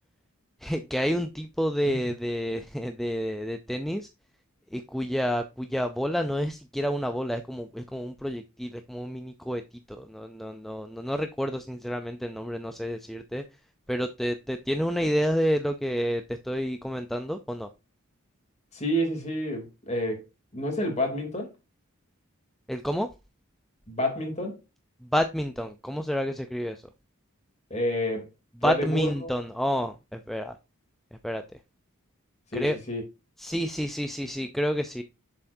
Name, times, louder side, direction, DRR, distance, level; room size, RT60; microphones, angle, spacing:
voice 1, 0.6-4.1 4.7-9.6 9.9-13.4 13.9-17.7 22.7-23.1 25.0-26.9 28.6-30.6 31.2-31.4 32.5-32.8 33.4-35.0, equal, ahead, 0.4 m, -29 dB
voice 2, 18.7-20.2 20.5-21.5 23.9-24.6 27.7-28.3 28.6-29.1 32.5-33.0, equal, 30° left, 3.0 m, -29 dB
7.1 x 6.9 x 2.7 m
head